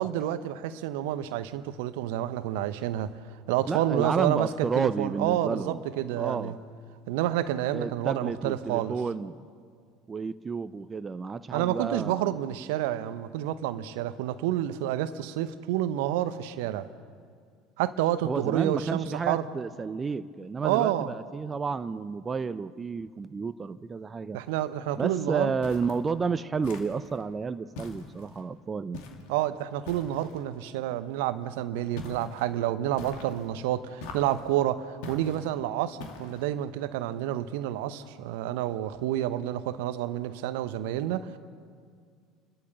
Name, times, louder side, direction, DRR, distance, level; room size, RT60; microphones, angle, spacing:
voice 1, 0.0-3.2 3.5-6.5 7.1-8.9 11.5-16.9 17.8-19.5 20.6-21.1 24.3-25.5 29.3-41.4, right 12 dB, 65° right, 0.8 m, -29 dB
voice 2, 3.7-5.8 6.2-6.5 7.7-9.4 10.1-12.3 18.2-24.4 25.0-29.0, right 5 dB, 25° right, 0.6 m, -31 dB
sound 1, 25.6-26.1 26.6-27.2 27.7-28.4 28.9-29.3 29.8-30.4 32.0-32.4 33.0-33.5 34.0-34.5 35.0-35.5 36.0-36.5, left 3 dB, 65° left, 2.4 m, -43 dB
29.5 x 13.0 x 6.9 m
figure-of-eight pair, 65°, 0 cm